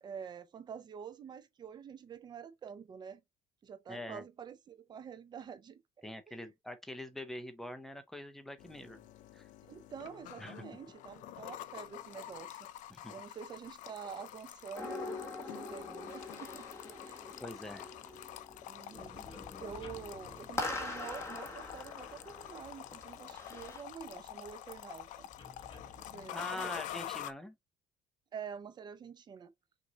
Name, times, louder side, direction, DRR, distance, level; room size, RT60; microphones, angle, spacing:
voice 1, 0.0-3.2 3.6-6.5 9.7-12.6 13.1-16.7 17.0-17.3 18.7-25.3 26.0-26.8 28.3-29.5, right 7 dB, 30° right, 0.6 m, -47 dB
voice 2, 3.9-4.2 6.0-9.0 9.3-9.4 10.4-10.6 12.9-13.1 17.4-17.9 26.3-27.6, left 1 dB, ahead, 0.7 m, -44 dB
sound 1, 8.6-27.3, left 13 dB, 60° left, 0.5 m, -47 dB
sound 2, 14.7-23.8, left 2 dB, 20° left, 1.4 m, -44 dB
sound 3, 18.9-26.3, left 5 dB, 35° left, 1.1 m, -56 dB
6.0 x 2.7 x 2.8 m
cardioid pair, 155°, 15 cm